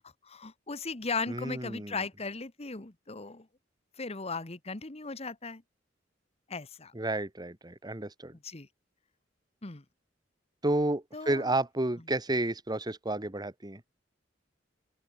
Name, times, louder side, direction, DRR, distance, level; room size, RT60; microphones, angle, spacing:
voice 1, 0.0-3.5 4.0-5.6 6.5-6.9 8.4-8.7 9.6-9.8 11.1-11.5, left 4 dB, 35° left, 1.3 m, -37 dB
voice 2, 1.3-2.0 6.9-8.3 10.6-13.8, right 2 dB, 20° right, 1.4 m, -31 dB
open air
head